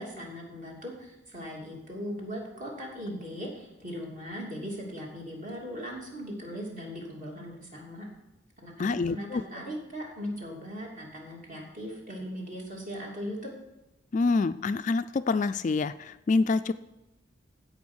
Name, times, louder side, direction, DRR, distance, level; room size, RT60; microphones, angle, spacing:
voice 1, 0.0-8.1 8.6-13.5, equal, 40° right, -1 dB, 3.0 m, -39 dB
voice 2, 8.8-9.4 14.1-16.7, left 3 dB, 40° left, 11 dB, 0.3 m, -26 dB
15.5 x 5.2 x 6.3 m, 0.97 s
head